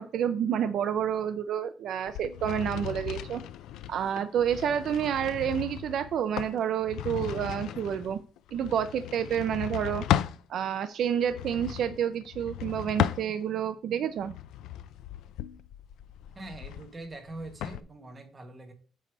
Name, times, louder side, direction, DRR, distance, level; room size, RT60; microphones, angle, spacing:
voice 1, 0.0-3.4 3.9-8.2 8.5-10.0 10.5-14.3, right 9 dB, 55° right, 10 dB, 0.5 m, -29 dB
sound 1, 2.1-10.4 11.2-13.7 14.2-17.8, left 11 dB, 80° left, 0.4 m, -35 dB
voice 2, 16.3-18.7, right 2 dB, 15° right, 4 dB, 1.4 m, -43 dB
9.1 x 3.3 x 6.2 m, 0.40 s
cardioid pair, 165°, 0 cm